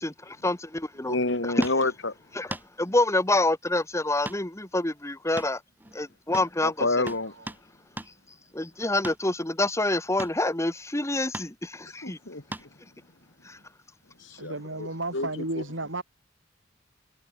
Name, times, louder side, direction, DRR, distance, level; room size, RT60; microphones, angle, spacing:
voice 1, 0.0-1.1 2.4-2.5 2.8-5.6 5.9-6.9 8.5-12.2 13.4-13.6, left 2 dB, 15° left, 1.7 m, -27 dB
voice 2, 1.0-2.1 6.6-7.3 12.0-12.7 14.2-15.6, left 2 dB, 70° left, 2.9 m, -29 dB
sound 1, 1.6-1.8 2.5-2.7 4.3-4.4 4.7-4.8 5.4-6.0 6.3-6.5 7.1-7.7 8.0-8.1 9.0-9.2 10.2-10.4 11.3-11.5 12.5-12.8 14.4-14.5, right 1 dB, 10° right, 2.4 m, -38 dB
voice 3, 14.4-16.0, right 2 dB, 80° right, 8.0 m, -33 dB
head